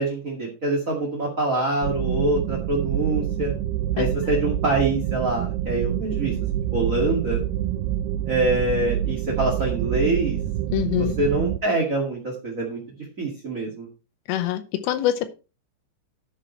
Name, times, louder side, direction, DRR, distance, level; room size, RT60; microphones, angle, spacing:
voice 1, 0.0-3.5 3.9-6.3 6.7-7.4 8.3-10.4 11.0-12.8 13.2-13.9, right 2 dB, 40° right, -1 dB, 1.1 m, -25 dB
sound 1, 1.8-11.6, right 11 dB, 90° right, 2.2 m, -26 dB
voice 2, 10.7-11.1 14.3-15.3, left 12 dB, 80° left, 9 dB, 2.9 m, -24 dB
11.0 x 6.3 x 4.5 m, 0.31 s
omnidirectional pair, 5.3 m